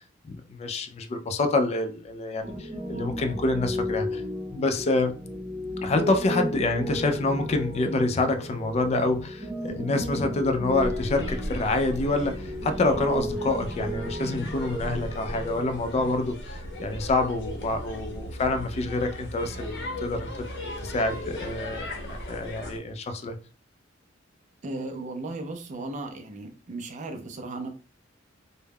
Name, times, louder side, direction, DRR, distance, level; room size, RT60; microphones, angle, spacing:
voice 1, 0.2-4.2 4.5-5.2 5.8-20.5 20.8-21.9 22.3-23.4, left 2 dB, 35° left, 0.3 m, -27 dB
Piano, 2.4-16.1, equal, 20° right, 0.8 m, -34 dB
sound 1, 10.7-22.8, equal, 65° left, 0.7 m, -37 dB
voice 2, 24.6-27.7, right 2 dB, 40° right, 0.4 m, -36 dB
2.2 x 2.0 x 3.3 m
head